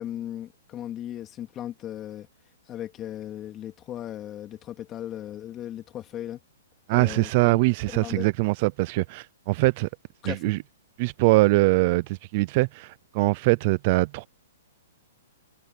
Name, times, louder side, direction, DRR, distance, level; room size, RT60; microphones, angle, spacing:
voice 1, 0.0-2.3 2.7-6.4 6.9-7.6 7.9-8.3 10.2-10.5, left 11 dB, 20° left, 3.2 m, -37 dB
voice 2, 6.9-9.9 10.2-10.6 11.0-14.3, right 23 dB, 40° right, 0.5 m, -22 dB
hypercardioid pair, 155°, 0 cm